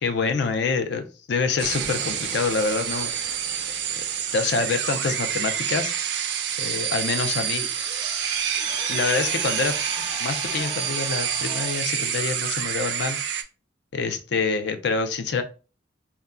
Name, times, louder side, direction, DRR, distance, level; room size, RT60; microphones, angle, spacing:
voice 1, 0.0-3.1 4.0-4.1 4.3-5.9 6.6-7.7 8.9-9.8 10.2-13.2 13.9-15.4, left 4 dB, 60° left, 8 dB, 0.4 m, -26 dB
sound 1, 1.6-13.4, right 8 dB, 60° right, 0.3 m, -28 dB
sound 2, 7.0-12.0, left 1 dB, 40° left, 0.8 m, -39 dB
2.2 x 2.2 x 3.5 m, 0.34 s
head